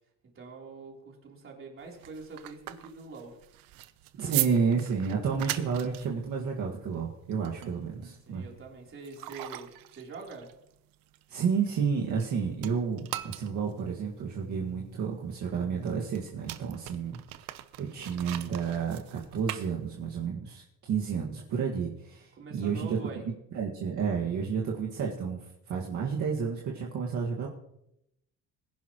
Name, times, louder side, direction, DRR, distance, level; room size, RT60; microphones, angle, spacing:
voice 1, 0.4-3.4 8.3-10.5 22.3-23.2, right 3 dB, 40° right, -1 dB, 3.6 m, -44 dB
sound 1, 1.8-12.3 12.6-20.3, right 15 dB, 90° right, 0.9 m, -40 dB
voice 2, 4.1-8.4 11.3-17.2 17.8-23.0 23.5-27.5, right 6 dB, 60° right, -2 dB, 1.9 m, -31 dB
20.5 x 11.0 x 3.1 m, 0.80 s
cardioid pair, 145°, 34 cm